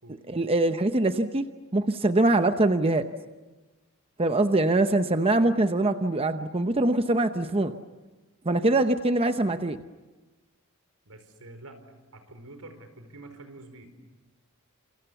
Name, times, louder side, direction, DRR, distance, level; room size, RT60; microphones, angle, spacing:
voice 1, 0.3-1.5 1.7-3.1 4.2-7.7 8.4-9.8, right 2 dB, 25° right, 8 dB, 0.8 m, -23 dB
voice 2, 11.0-11.8 12.1-13.9, right 2 dB, 90° right, 8 dB, 4.8 m, -47 dB
30.0 x 28.0 x 7.1 m, 1.2 s
head